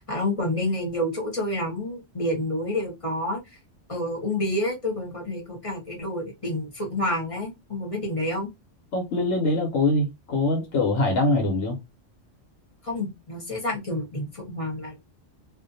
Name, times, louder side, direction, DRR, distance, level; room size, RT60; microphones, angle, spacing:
voice 1, 0.0-3.4 3.9-8.5 12.8-15.0, left 1 dB, 30° left, 0.9 m, -29 dB
voice 2, 8.9-11.8, left 2 dB, 90° left, 1.2 m, -23 dB
2.5 x 2.1 x 2.6 m
omnidirectional pair, 1.3 m